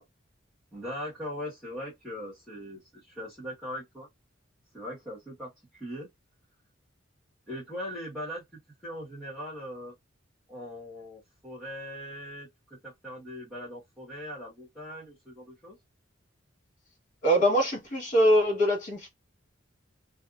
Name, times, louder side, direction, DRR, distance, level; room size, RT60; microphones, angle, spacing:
voice 1, 0.7-4.1 4.7-6.1 7.5-8.4 8.8-9.9 10.5-15.8, equal, ahead, 1.1 m, -40 dB
voice 2, 17.2-19.1, equal, 40° left, 1.4 m, -23 dB
2.6 x 2.4 x 2.5 m
head